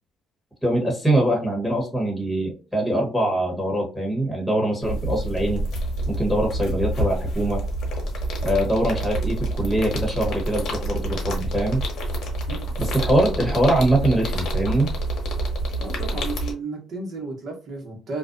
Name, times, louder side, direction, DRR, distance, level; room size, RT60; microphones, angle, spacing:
voice 1, 0.6-5.6 6.1-7.6 8.4-11.8 12.8-14.9, right 1 dB, 5° left, -2 dB, 1.2 m, -23 dB
sound 1, 4.8-16.5, right 1 dB, 65° left, 0.9 m, -27 dB
voice 2, 15.8-18.2, right 3 dB, 55° right, 1 dB, 1.1 m, -33 dB
2.4 x 2.2 x 2.5 m, 0.33 s
supercardioid pair, 80°, 0 cm